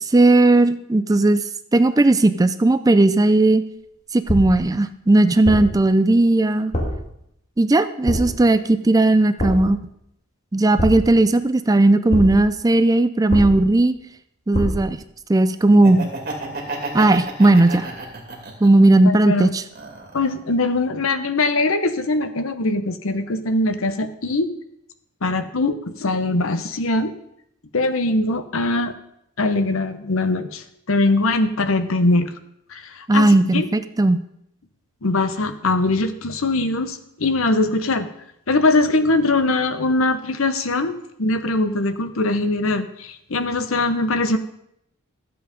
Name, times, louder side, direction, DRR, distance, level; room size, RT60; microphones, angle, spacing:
voice 1, 0.0-1.4 1.7-3.6 4.1-6.7 7.6-9.8 10.5-13.9 14.5-15.0 15.3-16.1 16.9-17.9 18.6-19.6 33.1-34.2, right 2 dB, 15° right, 12 dB, 0.4 m, -16 dB
sound 1, 4.3-4.7 5.4-5.9 6.7-7.1 8.1-8.5 9.4-9.8 10.8-11.3 12.1-12.5 13.3-13.8 14.5-15.0, left 1 dB, 30° left, 2.5 m, -25 dB
Laughter, 15.7-18.9 19.3-20.4, right 2 dB, 45° right, 2.3 m, -31 dB
voice 2, 19.0-19.5 20.1-24.5 25.2-27.1 27.7-28.9 29.4-32.3 32.7-33.7 35.0-38.1 38.5-44.4, left 2 dB, 70° left, 10 dB, 0.9 m, -21 dB
13.0 x 7.8 x 5.2 m, 0.76 s
head